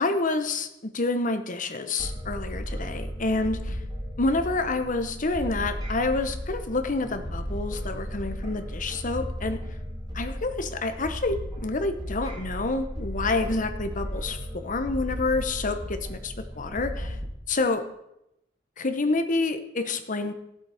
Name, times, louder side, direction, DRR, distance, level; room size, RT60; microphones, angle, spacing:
voice 1, 0.0-3.8 4.2-9.6 10.1-17.2 17.5-17.8 18.8-20.3, left 3 dB, 40° left, 9 dB, 1.0 m, -28 dB
sound 1, 2.0-17.2, equal, 20° right, 2.6 m, -35 dB
15.5 x 7.9 x 4.9 m, 0.84 s
head